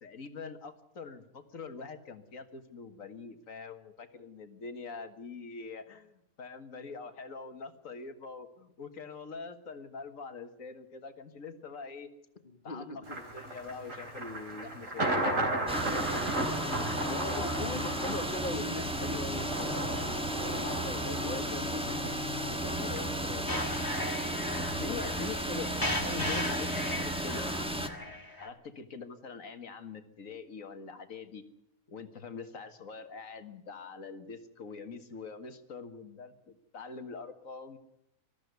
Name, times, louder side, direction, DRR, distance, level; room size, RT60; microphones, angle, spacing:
voice 1, 0.0-12.1 12.6-16.0 16.8-17.8 22.6-27.6 28.4-31.4 31.9-37.8, left 4 dB, 65° left, 9 dB, 2.0 m, -44 dB
voice 2, 12.4-13.2 16.9-20.1 20.4-22.0, left 2 dB, 35° left, 9 dB, 1.5 m, -40 dB
Thunder, 13.1-25.4, right 1 dB, 60° right, 4.2 m, -36 dB
sound 1, 15.7-27.9, equal, 5° right, 1.3 m, -34 dB
sound 2, 23.5-28.5, left 1 dB, 15° left, 1.8 m, -36 dB
20.5 x 14.0 x 9.5 m, 0.80 s
omnidirectional pair, 1.5 m